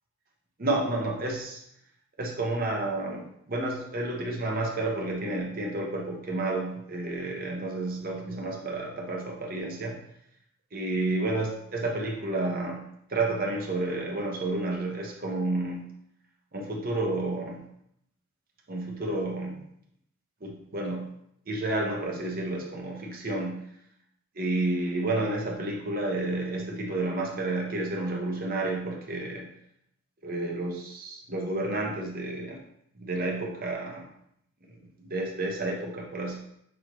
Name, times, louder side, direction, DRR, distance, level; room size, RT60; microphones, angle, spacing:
voice 1, 0.6-1.6 2.2-10.0 10.7-12.8 13.1-15.9 16.5-17.6 18.7-19.6 20.4-21.1 21.5-23.6 24.4-29.5 30.2-32.6 33.0-34.0 35.0-36.4, right 2 dB, 40° right, 0 dB, 0.8 m, -30 dB
6.2 x 2.7 x 3.0 m, 0.73 s
head